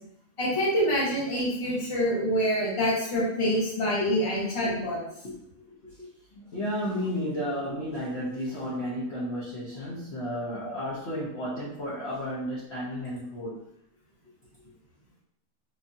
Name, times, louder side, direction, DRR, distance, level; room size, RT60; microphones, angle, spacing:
voice 1, 0.4-5.0, equal, 20° left, -6 dB, 0.9 m, -26 dB
voice 2, 6.3-13.6, equal, 50° left, -8 dB, 0.9 m, -33 dB
5.1 x 2.3 x 2.7 m, 0.75 s
omnidirectional pair, 1.8 m